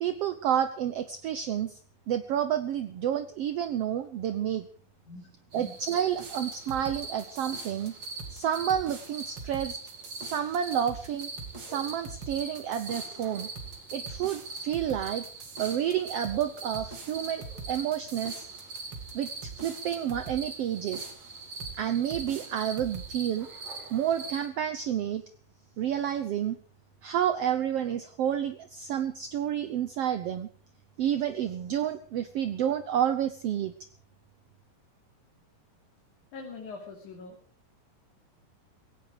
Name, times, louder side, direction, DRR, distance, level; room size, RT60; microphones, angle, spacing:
voice 1, 0.0-1.8 2.1-4.7 5.5-7.9 8.3-9.8 10.3-11.3 11.6-13.5 13.9-15.3 15.6-18.5 19.1-21.1 21.8-23.5 23.9-25.2 25.8-26.5 27.0-30.5 31.0-33.7, right 10 dB, 75° right, 11 dB, 1.4 m, -30 dB
voice 2, 5.0-5.8 36.3-37.4, left 3 dB, 60° left, 0 dB, 4.4 m, -43 dB
sound 1, 5.5-24.5, right 3 dB, 50° right, 6.0 m, -42 dB
sound 2, 6.1-20.5 20.9-21.8 22.1-23.1, right 4 dB, 35° right, 3.0 m, -44 dB
17.5 x 16.5 x 4.9 m, 0.42 s
omnidirectional pair, 4.0 m